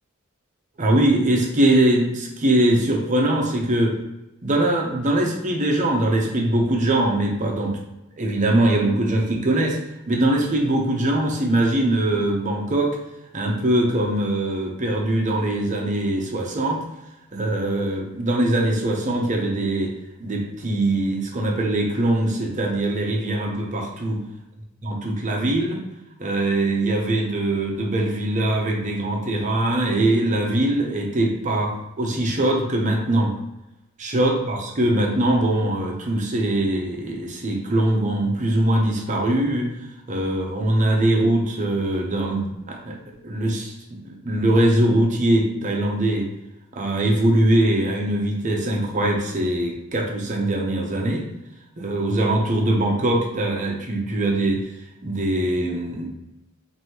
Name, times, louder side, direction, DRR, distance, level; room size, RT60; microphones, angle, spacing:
voice 1, 0.8-4.0 4.4-7.8 8.2-9.8 10.1-12.9 13.3-16.8 17.3-19.9 20.2-24.2 24.8-25.8 26.2-33.3 34.0-39.7 40.1-43.0 43.2-46.3 46.7-51.3 51.8-54.6 55.0-56.1, right 1 dB, 35° right, 0 dB, 0.7 m, -22 dB
4.8 x 2.7 x 2.9 m, 0.94 s
head